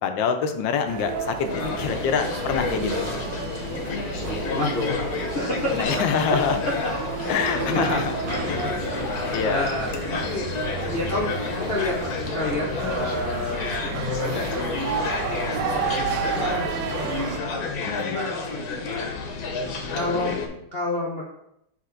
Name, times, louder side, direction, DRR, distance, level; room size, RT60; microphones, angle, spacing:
voice 1, 0.0-3.2 5.7-6.6 7.3-8.1 8.5-9.0 9.3-9.7 17.8-18.2 20.1-20.6, left 6 dB, 80° left, 7 dB, 1.4 m, -26 dB
sound 1, 0.9-17.4, right 6 dB, 80° right, 1.3 m, -32 dB
sound 2, 1.5-20.5, left 4 dB, 60° left, 1.2 m, -30 dB
voice 2, 1.5-2.1 2.4-2.5 4.2-5.0 5.3-5.7 6.3-6.4 6.8-10.5 10.9-16.7 17.2-19.3 19.6-20.4 20.7-21.2, left 2 dB, 45° left, -4 dB, 0.8 m, -31 dB
7.4 x 3.4 x 3.8 m, 0.78 s
omnidirectional pair, 2.0 m